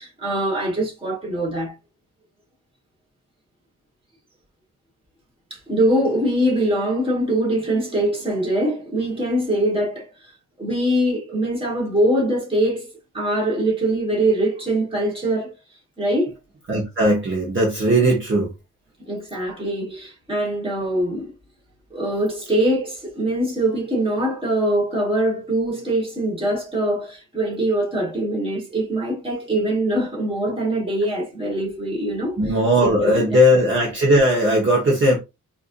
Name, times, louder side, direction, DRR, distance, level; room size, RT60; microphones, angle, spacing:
voice 1, 0.0-1.7 5.5-10.3 10.6-15.5 16.0-16.3 19.1-21.3 21.9-32.4 32.8-33.1, right 1 dB, 15° right, 1.5 m, -23 dB
voice 2, 16.7-18.5 32.4-35.2, equal, 35° right, 1.2 m, -18 dB
4.6 x 2.7 x 2.6 m
wide cardioid pair, 160°, 34 cm